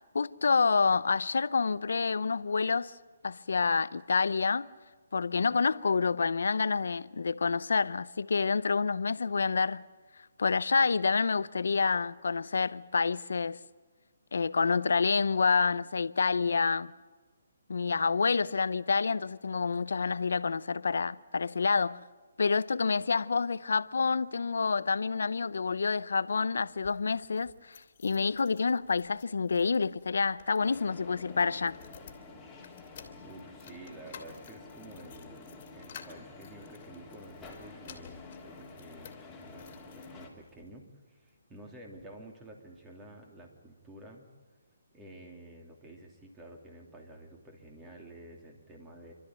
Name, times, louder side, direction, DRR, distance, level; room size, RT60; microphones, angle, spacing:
voice 1, 0.1-2.9 3.2-4.7 5.1-9.8 10.4-13.6 14.3-16.9 17.7-22.0 22.4-31.8, left 4 dB, 75° left, 0.6 m, -28 dB
sound 1, 26.7-40.7 41.3-42.1 42.5-42.6 42.8-42.9, left 7 dB, 40° left, 2.4 m, -55 dB
sound 2, 30.6-40.3, left 3 dB, 10° left, 3.1 m, -49 dB
voice 2, 33.2-39.6 39.9-44.3 44.9-49.1, right 1 dB, 15° right, 2.8 m, -50 dB
28.0 x 13.0 x 9.2 m
hypercardioid pair, 155°, 0 cm